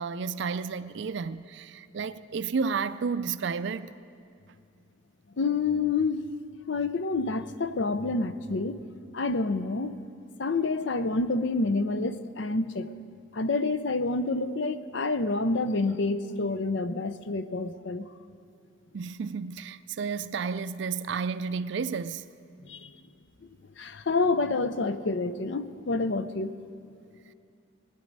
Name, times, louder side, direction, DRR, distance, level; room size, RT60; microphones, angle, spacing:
voice 1, 0.0-3.9 18.9-22.2, right 5 dB, 60° right, 0.4 m, -32 dB
voice 2, 5.4-6.3 6.7-8.8 9.1-9.9 10.4-12.9 13.3-18.1 22.6-22.9 23.8-26.5, left 3 dB, 60° left, 0.5 m, -28 dB
19.5 x 10.5 x 5.3 m
head